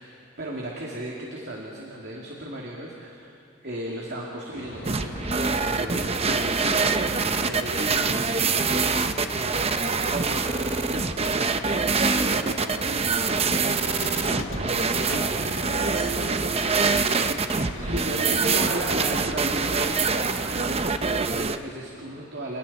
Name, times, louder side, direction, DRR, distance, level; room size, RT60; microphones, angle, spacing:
voice 1, 0.0-3.4 3.6-5.4 5.7-9.0 16.7-17.4 17.8-22.6, right 1 dB, 50° right, -2 dB, 2.6 m, -35 dB
sound 1, 4.5-20.5, left 1 dB, 90° left, 4.6 m, -41 dB
sound 2, 4.8-21.6, right 4 dB, 30° right, 0.8 m, -25 dB
voice 2, 9.5-15.9, right 1 dB, 70° right, 0 dB, 4.2 m, -43 dB
Squeak, 13.6-19.0, left 2 dB, 70° left, 1.6 m, -41 dB
29.5 x 29.0 x 4.3 m, 2.6 s
head